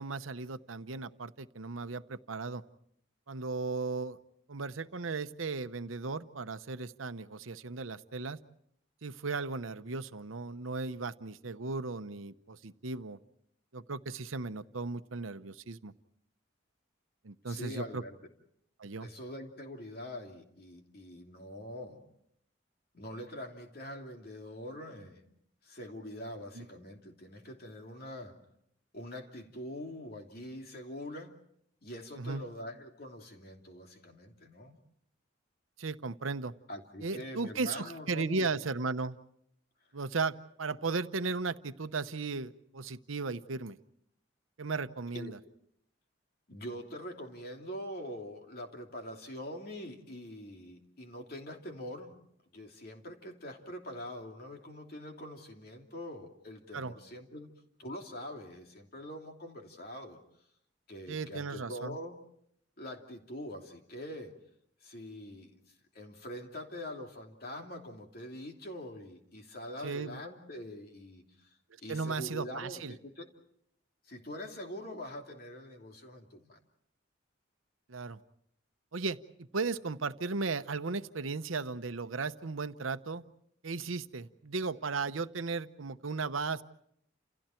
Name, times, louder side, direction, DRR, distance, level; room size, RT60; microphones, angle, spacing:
voice 1, 0.0-2.6 3.3-4.2 4.5-8.4 9.0-13.2 13.7-15.9 17.2-18.0 18.8-19.1 26.6-26.7 32.1-32.4 35.8-36.5 37.0-39.2 39.9-43.8 44.6-45.4 56.7-56.9 61.1-62.0 69.8-70.2 71.9-72.9 77.9-78.2 78.9-83.2 83.6-86.6, right 4 dB, 90° right, 11 dB, 0.9 m, -36 dB
voice 2, 17.5-18.2 19.0-22.1 22.9-25.2 25.6-28.3 28.9-31.3 31.8-34.8 36.7-38.6 45.1-45.4 46.5-52.1 52.5-57.5 57.8-60.2 60.9-62.2 62.8-64.3 64.8-65.5 65.9-71.5 71.8-73.3 74.1-76.6, left 1 dB, 50° left, 2 dB, 3.0 m, -44 dB
30.0 x 28.5 x 4.5 m, 0.71 s
head